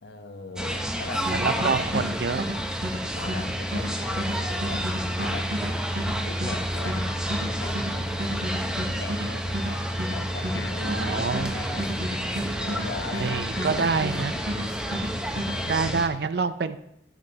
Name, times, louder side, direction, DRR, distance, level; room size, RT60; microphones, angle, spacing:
voice 1, 0.0-1.3 1.6-2.1 3.1-5.5 6.2-7.2 7.4-9.8 10.1-12.0 12.5-14.4 15.2-16.1, left 3 dB, 65° left, 7 dB, 0.9 m, -39 dB
sound 1, 0.6-16.1, equal, 5° right, 0.6 m, -30 dB
voice 2, 1.3-2.6 10.8-11.5 13.2-14.4 15.7-16.8, right 4 dB, 60° right, 13 dB, 0.5 m, -27 dB
sound 2, 1.3-14.2 14.5-15.6, equal, 85° right, 4.0 m, -32 dB
sound 3, 5.7-8.9 9.3-9.9 10.2-11.9 12.3-12.5 12.9-13.5 14.2-14.5, left 1 dB, 25° left, 0.9 m, -46 dB
13.5 x 7.4 x 2.9 m, 0.79 s
head